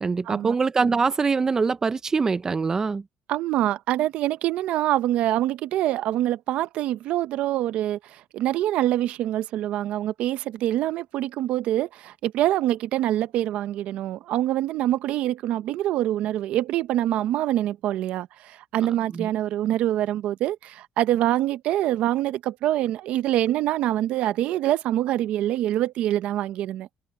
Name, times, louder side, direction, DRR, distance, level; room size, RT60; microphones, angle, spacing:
voice 1, 0.0-3.0 18.8-19.3, right 4 dB, 25° right, 0.7 m, -24 dB
voice 2, 3.3-26.9, right 13 dB, 75° right, 0.8 m, -25 dB
cardioid pair, 105°, 2 cm